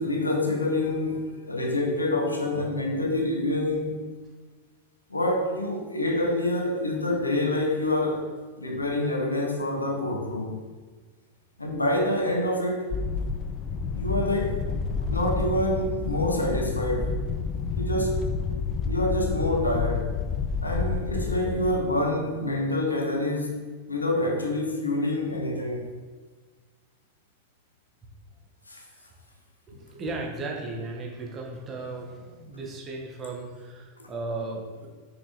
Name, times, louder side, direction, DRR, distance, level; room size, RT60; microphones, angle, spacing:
voice 1, 0.0-4.0 5.1-8.3 8.6-10.6 11.6-13.0 13.9-14.7 15.1-17.2 17.8-18.3 18.8-20.1 20.6-23.6 23.9-25.9 28.7-28.8 34.0-34.1, left 1 dB, 80° left, 2 dB, 1.1 m, -27 dB
sound 1, 12.9-21.8, left 5 dB, 30° left, 0.5 m, -29 dB
voice 2, 29.7-34.9, right 2 dB, 25° right, -1 dB, 1.5 m, -36 dB
6.1 x 5.8 x 4.1 m, 1.4 s
figure-of-eight pair, 90°, 0 cm